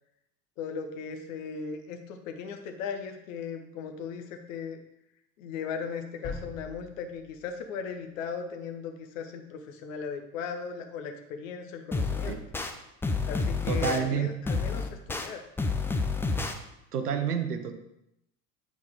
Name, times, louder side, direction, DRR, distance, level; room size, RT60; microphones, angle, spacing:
voice 1, 0.6-4.8 5.4-12.4 13.3-15.4, left 6 dB, 55° left, 5 dB, 1.2 m, -37 dB
sound 1, 6.2-8.3, left 3 dB, 25° left, 2.2 m, -43 dB
sound 2, 11.9-12.7 13.0-14.0 14.5-15.3 15.6-16.5, left 3 dB, 5° left, 0.4 m, -29 dB
voice 2, 13.7-14.3 16.9-17.8, right 7 dB, 75° right, 7 dB, 0.8 m, -29 dB
8.5 x 4.3 x 4.8 m, 0.84 s
figure-of-eight pair, 70°, 46 cm